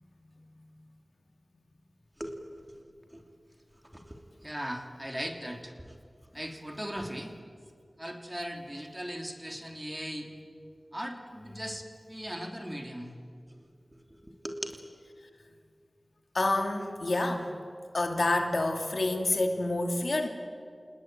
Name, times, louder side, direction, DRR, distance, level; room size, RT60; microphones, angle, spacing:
voice 1, 4.4-5.9 6.3-7.3 8.0-10.3 10.9-13.1 14.3-14.7, equal, 15° right, 3 dB, 3.1 m, -38 dB
voice 2, 16.3-17.5 17.9-20.3, left 2 dB, 70° left, 4 dB, 2.7 m, -28 dB
28.5 x 20.0 x 9.1 m, 2.2 s
wide cardioid pair, 55°, 0 cm